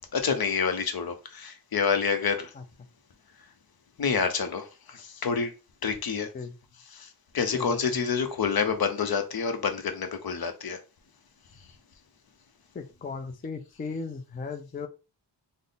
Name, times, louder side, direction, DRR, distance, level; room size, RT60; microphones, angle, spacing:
voice 1, 0.1-2.5 4.0-5.5 5.8-6.3 6.9-10.8, left 6 dB, 55° left, 0.7 m, -28 dB
voice 2, 7.5-8.1 12.7-14.9, left 4 dB, 25° left, 0.4 m, -36 dB
3.5 x 2.0 x 3.9 m
wide cardioid pair, 110°, 43 cm